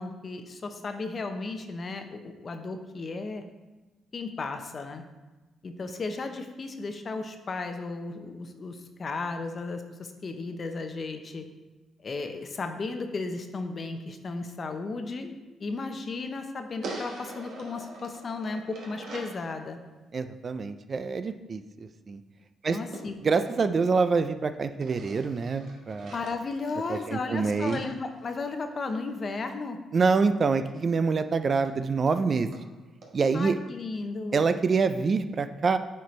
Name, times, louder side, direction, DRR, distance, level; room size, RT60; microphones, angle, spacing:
voice 1, 0.0-3.4 4.1-5.0 5.6-11.4 12.0-15.3 15.6-19.8 22.7-23.1 26.1-29.8 33.3-34.5, left 3 dB, 40° left, 7 dB, 0.7 m, -34 dB
sound 1, 16.8-19.4 22.9-24.3 24.8-28.9 30.8-30.9 31.2-31.3 31.6-31.7 32.1-32.2 32.5-32.6 33.0-33.1, right 2 dB, 70° right, 1.2 m, -44 dB
voice 2, 20.1-22.2 22.6-22.8 23.2-26.1 26.9-27.8 29.9-32.5 33.1-33.6 34.3-35.8, right 4 dB, 40° right, 10 dB, 0.3 m, -26 dB
9.2 x 4.4 x 3.2 m, 1.2 s
cardioid pair, 100°, 0 cm